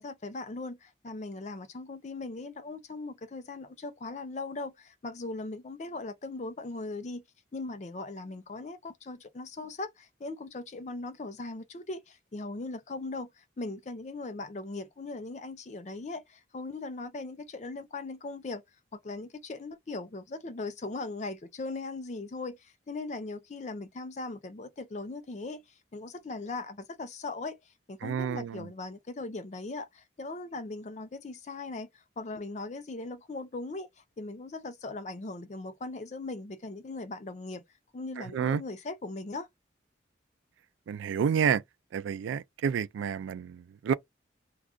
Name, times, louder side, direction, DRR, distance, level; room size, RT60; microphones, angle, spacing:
voice 1, 0.0-7.2 7.5-18.6 18.9-25.6 25.9-27.6 27.9-33.9 34.2-37.6 37.9-39.5, left 3 dB, 40° left, 0.4 m, -39 dB
voice 2, 28.0-28.7 38.2-38.6 40.9-41.6 41.9-43.9, right 7 dB, 90° right, 0.3 m, -29 dB
2.4 x 2.3 x 3.7 m
head